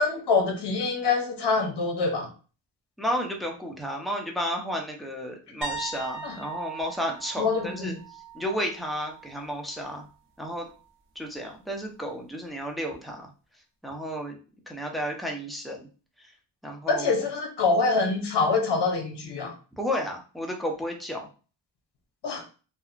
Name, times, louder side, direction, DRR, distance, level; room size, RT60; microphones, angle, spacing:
voice 1, 0.0-2.3 6.2-6.4 7.4-7.9 16.9-19.5 22.2-22.4, left 4 dB, 65° left, 4 dB, 0.8 m, -25 dB
voice 2, 3.0-8.0 8.3-10.0 10.4-10.7 11.2-13.3 13.8-14.4 14.7-15.9 16.2-16.3 16.6-17.3 19.8-21.3, equal, ahead, 1 dB, 0.6 m, -32 dB
sound 1, 5.6-9.4 9.7-10.0 12.9-13.0, right 4 dB, 25° right, 0.8 m, -40 dB
2.7 x 2.2 x 2.4 m, 0.36 s
cardioid pair, 85°, 45 cm